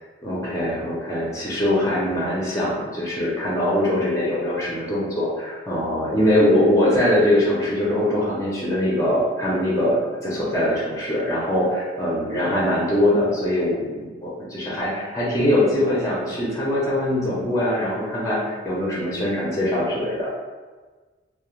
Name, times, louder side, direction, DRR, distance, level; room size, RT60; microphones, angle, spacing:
voice 1, 0.2-20.3, left 1 dB, 15° left, -6 dB, 0.4 m, -22 dB
2.1 x 2.0 x 2.9 m, 1.3 s
head